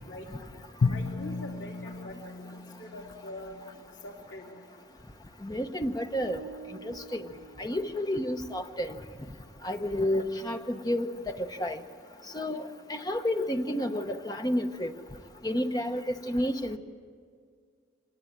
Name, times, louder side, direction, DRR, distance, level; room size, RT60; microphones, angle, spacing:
voice 1, 0.1-0.5 0.9-3.6 4.0-4.6 13.8-14.0, left 1 dB, 80° left, -1 dB, 2.7 m, -44 dB
Drum, 0.8-3.8, left 4 dB, 60° left, 0.5 m, -33 dB
voice 2, 5.4-6.4 6.8-7.2 7.6-9.0 9.6-11.8 12.3-14.9 15.4-16.8, left 1 dB, 20° left, 6 dB, 0.9 m, -30 dB
sound 1, 6.2-8.4, right 4 dB, 70° right, 2.2 m, -48 dB
25.5 x 19.0 x 8.9 m, 2.1 s
head